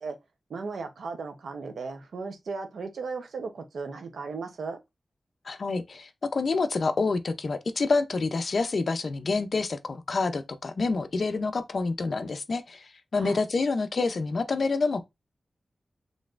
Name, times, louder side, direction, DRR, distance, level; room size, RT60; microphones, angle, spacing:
voice 1, 0.5-4.8 13.2-13.4, right 4 dB, 85° right, 0.8 m, -36 dB
voice 2, 5.5-15.1, left 3 dB, 55° left, 0.5 m, -27 dB
4.0 x 3.2 x 2.4 m
wide cardioid pair, 110°, 0 cm